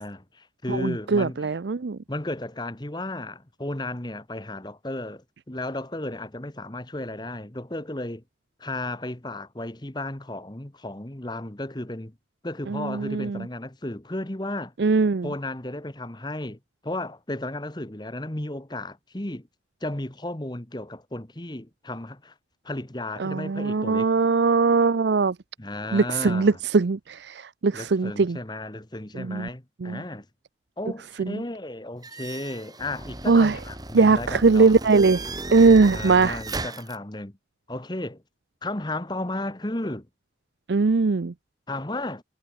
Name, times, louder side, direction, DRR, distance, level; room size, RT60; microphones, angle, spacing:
voice 1, 0.0-1.5 2.1-8.2 8.6-12.1 12.4-14.7 15.2-16.6 16.8-19.5 19.8-22.3 22.6-24.1 25.6-26.6 27.7-30.2 30.8-34.7 35.9-37.3 37.7-38.2 38.6-40.1 41.7-42.2, left 1 dB, 25° left, 1.4 m, -34 dB
voice 2, 0.7-2.0 12.7-13.4 14.8-15.3 23.2-25.3 25.9-28.4 29.2-29.5 29.8-30.0 31.2-31.4 33.3-33.6 33.9-35.2 35.5-36.4 40.7-41.3, right 4 dB, 70° right, 0.5 m, -20 dB
sound 1, 32.0-37.0, right 2 dB, 20° right, 4.8 m, -36 dB
head